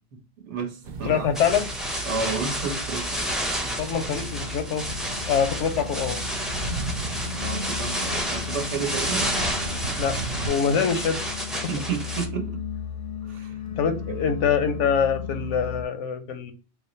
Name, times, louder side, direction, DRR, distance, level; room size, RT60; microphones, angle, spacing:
voice 1, 0.4-1.3 2.0-3.3 3.6-3.8 7.2-9.4 11.5-12.6 13.2-13.8 14.1-14.2, right 5 dB, 75° right, 1.2 m, -32 dB
sound 1, 0.8-10.5, right 1 dB, 55° right, 0.5 m, -36 dB
voice 2, 1.1-1.7 3.8-4.9 5.3-6.2 10.0-10.2 10.5-11.3 13.8-16.5, left 7 dB, 85° left, 1.0 m, -24 dB
sound 2, 1.4-12.3, equal, ahead, 0.3 m, -30 dB
sound 3, 2.7-15.8, left 6 dB, 60° left, 0.6 m, -36 dB
3.6 x 2.0 x 3.8 m
omnidirectional pair, 1.2 m